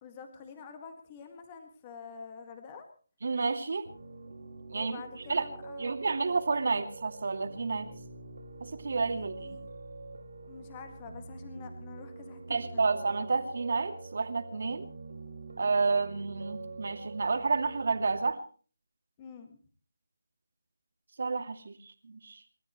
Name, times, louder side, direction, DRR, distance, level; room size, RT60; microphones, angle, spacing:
voice 1, 0.0-2.9 4.7-6.0 9.4-9.7 10.4-12.9 19.2-19.6, left 5 dB, 20° left, 6 dB, 1.9 m, -47 dB
voice 2, 3.2-3.9 4.7-5.0 5.3-5.5 5.8-7.9 8.6-9.3 12.5-14.8 15.6-18.4 21.2-21.7 22.0-22.4, right 4 dB, 60° right, 7 dB, 2.5 m, -30 dB
Piano, 3.8-18.2, right 3 dB, 85° right, 4.3 m, -45 dB
28.5 x 13.5 x 3.1 m, 0.39 s
figure-of-eight pair, 170°, 0 cm